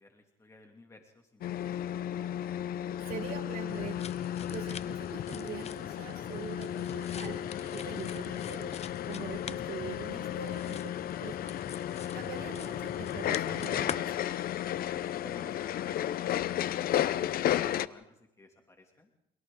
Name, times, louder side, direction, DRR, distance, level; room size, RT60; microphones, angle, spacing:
voice 1, 0.0-2.7 14.9-19.1, left 2 dB, 15° left, 3 dB, 2.7 m, -55 dB
sound 1, 1.4-17.9, left 11 dB, 60° left, 0.8 m, -34 dB
voice 2, 3.1-4.1 4.5-7.4 7.7-8.7 9.1-10.9 11.2-11.5 12.1-14.1, right 9 dB, 60° right, 1 dB, 6.1 m, -43 dB
sound 2, 3.7-14.0, left 7 dB, 40° left, 0.9 m, -43 dB
30.0 x 26.0 x 3.9 m, 0.82 s
cardioid pair, 110°, 17 cm